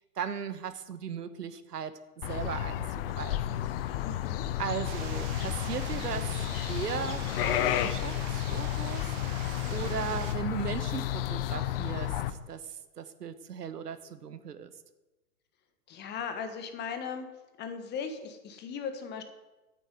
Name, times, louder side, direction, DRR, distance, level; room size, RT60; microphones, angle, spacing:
voice 1, 0.2-2.0 2.3-3.7 4.6-9.1 9.7-14.7, right 7 dB, 90° right, 12 dB, 1.3 m, -37 dB
sound 1, 2.2-12.3, left 12 dB, 40° left, 0.7 m, -32 dB
voice 2, 4.0-4.4 15.9-17.3 17.6-19.2, left 6 dB, 20° left, 8 dB, 1.4 m, -37 dB
sound 2, 4.8-10.4, right 10 dB, 25° right, 1.0 m, -44 dB
9.2 x 9.1 x 9.1 m, 1.1 s
hypercardioid pair, 135°, 46 cm